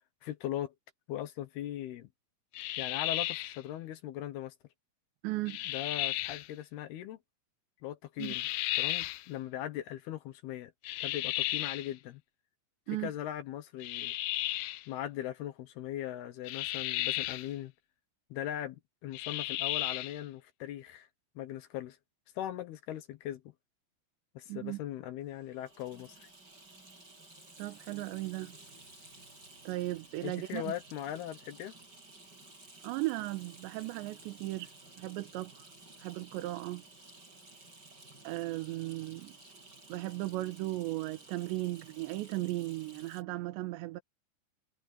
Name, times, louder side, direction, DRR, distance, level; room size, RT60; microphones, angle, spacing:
voice 1, 0.2-0.7 1.1-2.1 2.8-4.5 5.7-7.2 7.8-10.7 11.0-12.2 13.0-14.2 14.9-17.7 18.3-21.1 21.4-22.0 22.4-23.4 24.3-26.3 30.2-31.7, left 12 dB, 70° left, 2.8 m, -39 dB
sound 1, 2.5-3.6 5.5-6.5 8.2-9.2 10.8-11.9 13.8-14.8 16.5-17.5 19.1-20.2, left 17 dB, 90° left, 2.2 m, -34 dB
voice 2, 5.2-5.6 8.2-8.4 12.9-13.1 24.5-24.8 27.6-28.5 29.6-30.7 32.8-34.7 35.0-35.6 36.0-36.8 38.2-39.3 39.9-44.0, right 18 dB, 80° right, 3.3 m, -36 dB
Water tap faucet / Sink (filling or washing), 25.3-43.2, right 2 dB, 20° right, 8.5 m, -55 dB
omnidirectional pair, 5.2 m